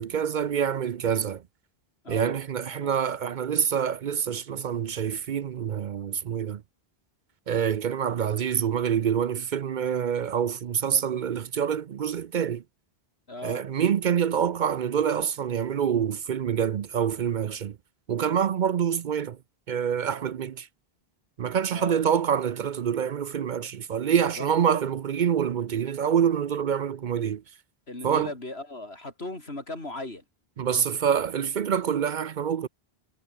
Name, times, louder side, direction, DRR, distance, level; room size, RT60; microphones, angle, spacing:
voice 1, 0.0-1.4 2.1-6.6 7.5-12.6 13.4-17.8 18.1-19.4 19.7-20.7 21.4-27.4 28.0-28.3 30.6-32.7, right 8 dB, 55° right, 0.7 m, -26 dB
voice 2, 2.0-2.4 2.8-3.0 13.3-13.6 21.7-22.0 24.4-24.5 27.9-30.2, left 2 dB, 90° left, 5.1 m, -37 dB
omnidirectional pair, 1.0 m